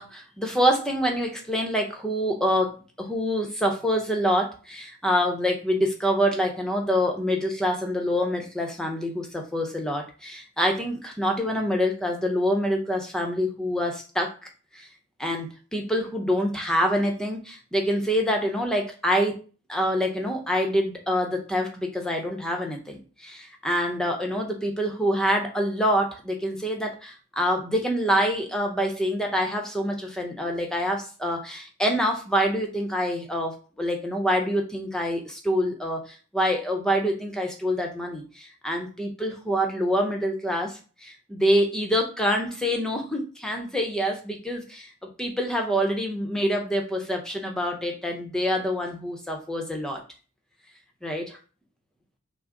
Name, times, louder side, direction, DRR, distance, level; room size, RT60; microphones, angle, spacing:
voice 1, 0.0-14.3 14.7-14.9 15.2-19.4 19.7-50.0 51.0-51.4, equal, 5° left, 2 dB, 0.7 m, -26 dB
6.1 x 2.0 x 3.7 m, 0.36 s
head